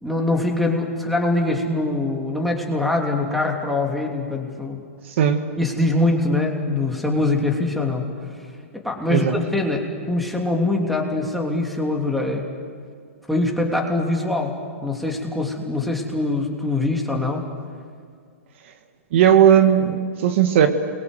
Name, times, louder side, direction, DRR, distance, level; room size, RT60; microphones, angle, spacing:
voice 1, 0.0-4.8 5.6-8.1 8.7-9.2 9.5-12.5 13.3-14.5 14.8-17.4, left 2 dB, ahead, -1 dB, 3.1 m, -23 dB
voice 2, 19.1-20.7, right 9 dB, 55° right, 7 dB, 1.8 m, -16 dB
29.0 x 22.5 x 8.1 m, 2.1 s
hypercardioid pair, 140°, 8 cm